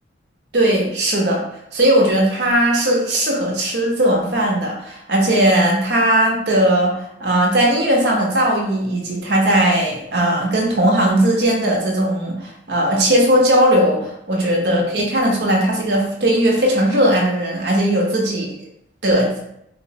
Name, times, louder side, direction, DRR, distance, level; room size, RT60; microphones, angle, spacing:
voice 1, 0.5-1.4 1.7-18.5 19.0-19.3, right 1 dB, 65° right, -1 dB, 0.8 m, -18 dB
4.1 x 2.0 x 2.7 m, 0.76 s
head